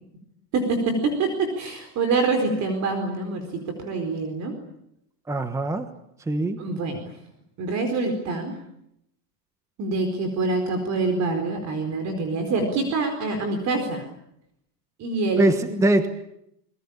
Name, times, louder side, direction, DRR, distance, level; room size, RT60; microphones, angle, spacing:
voice 1, 0.5-4.5 6.6-7.0 7.6-8.5 9.8-14.1 15.0-15.8, right 3 dB, 35° right, 6 dB, 4.5 m, -25 dB
voice 2, 5.3-5.9 6.3-6.6 15.4-16.1, right 2 dB, 5° right, 10 dB, 1.2 m, -22 dB
27.5 x 22.0 x 8.8 m, 0.78 s
supercardioid pair, 150°, 48 cm